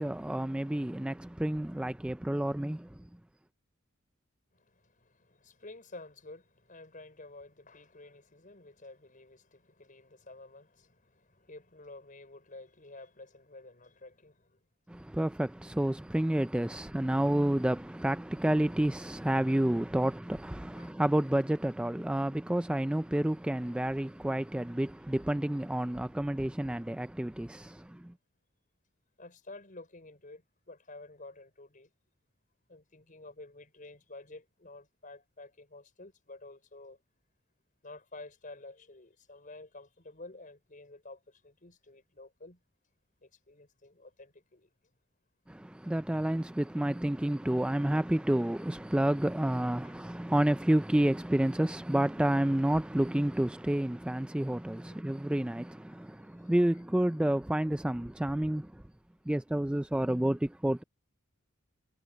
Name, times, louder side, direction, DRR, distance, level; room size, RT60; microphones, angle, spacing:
voice 1, 0.0-3.0 14.9-28.1 45.5-58.8 59.3-60.8, right 1 dB, 5° right, 0.3 m, -30 dB
voice 2, 4.5-14.6 20.7-21.0 23.8-24.0 29.2-31.9 32.7-37.0 37.8-42.6 43.2-44.7 49.8-50.0 54.9-55.0 55.9-56.0 56.4-56.6, left 2 dB, 40° left, 5.6 m, -51 dB
head